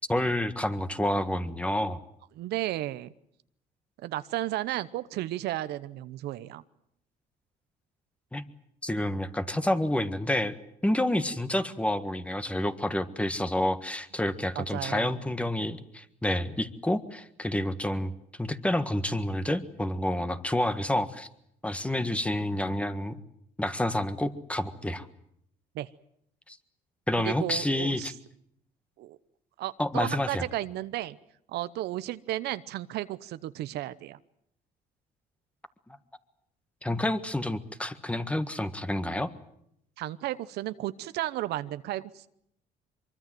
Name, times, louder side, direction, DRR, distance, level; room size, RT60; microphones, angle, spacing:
voice 1, 0.1-2.0 8.3-8.4 8.8-10.6 10.8-18.1 18.4-21.3 21.6-23.2 23.6-25.1 26.5-26.6 27.1-28.1 29.8-30.4 36.8-39.3, left 1 dB, 5° left, 11 dB, 1.6 m, -29 dB
voice 2, 2.3-3.1 4.0-6.6 14.5-15.2 25.7-25.9 27.2-28.1 29.0-29.2 29.6-31.2 31.5-34.2 40.0-42.3, right 15 dB, 80° right, 14 dB, 0.9 m, -33 dB
24.0 x 23.5 x 7.8 m, 0.75 s
cardioid pair, 110°, 17 cm